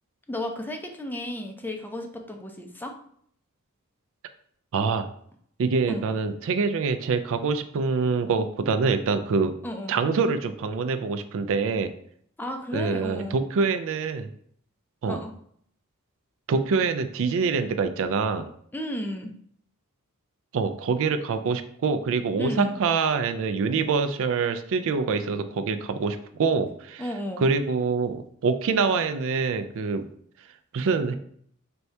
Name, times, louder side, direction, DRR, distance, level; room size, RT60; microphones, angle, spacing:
voice 1, 0.3-3.0 5.9-6.0 9.6-9.9 12.4-13.4 15.0-15.3 18.7-19.3 22.4-22.8 27.0-27.5, left 1 dB, 10° left, 3 dB, 0.4 m, -33 dB
voice 2, 4.7-5.1 5.6-9.6 9.9-11.9 12.7-14.3 15.0-15.2 16.5-18.5 20.5-27.0 27.4-30.1 30.7-31.1, right 4 dB, 65° right, 9 dB, 0.4 m, -25 dB
4.4 x 2.7 x 3.3 m, 0.64 s
head